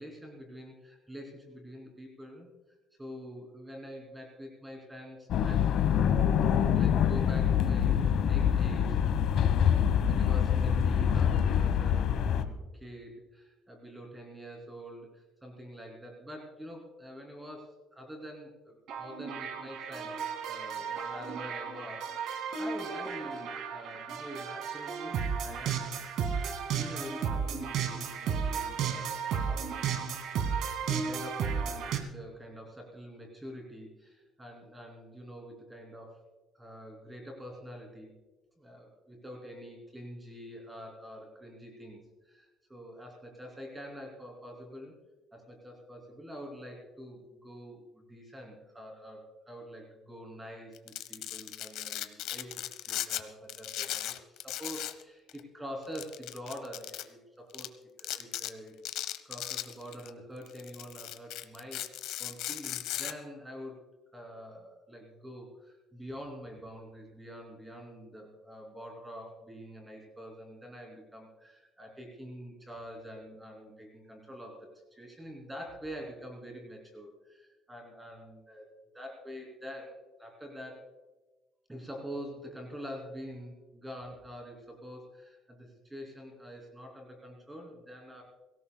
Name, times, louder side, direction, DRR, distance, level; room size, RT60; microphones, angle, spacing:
voice 1, 0.0-2.5 3.0-5.8 6.5-9.0 10.0-25.8 26.3-26.5 26.7-29.6 31.0-36.2 36.5-38.1 38.6-45.0 45.3-58.8 59.2-61.9 62.2-63.8 64.1-80.8 81.7-88.2, equal, 10° right, 0 dB, 3.0 m, -46 dB
sound 1, 5.3-12.4, left 8 dB, 60° left, 1.2 m, -25 dB
sound 2, 18.9-32.0, right 6 dB, 65° right, 2.2 m, -34 dB
Domestic sounds home sounds, 50.7-53.2 53.5-55.0 55.3-55.4 56.0-57.0 57.5-57.7 58.0-58.5 58.9-60.1 60.5-63.1, left 13 dB, 80° left, 1.0 m, -37 dB
23.5 x 17.5 x 2.3 m, 1.2 s
cardioid pair, 140°, 0 cm